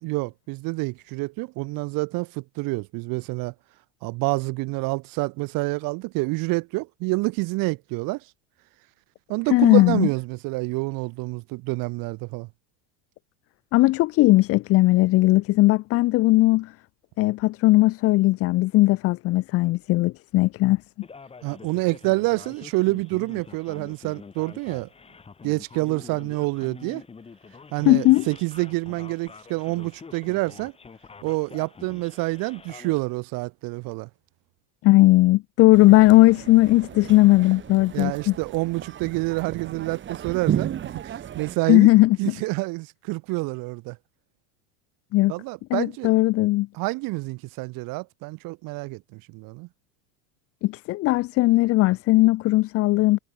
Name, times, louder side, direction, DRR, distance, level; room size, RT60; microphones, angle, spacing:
voice 1, 0.0-3.5 4.0-8.2 9.3-12.5 21.4-24.9 25.4-27.0 27.7-30.7 31.2-34.1 37.9-41.9 42.2-44.0 45.3-46.1 46.7-49.7, right 24 dB, 55° right, 2.9 m, -28 dB
voice 2, 9.5-10.1 13.7-16.7 17.2-20.8 27.9-28.3 34.8-38.4 41.7-42.3 45.1-45.3 45.7-46.7 50.6-53.2, left 19 dB, 35° left, 0.6 m, -18 dB
Male speech man speaking, 21.0-33.0, left 5 dB, 15° left, 4.0 m, -45 dB
sound 1, 35.7-41.6, right 10 dB, 25° right, 3.6 m, -33 dB
cardioid pair, 155°, 41 cm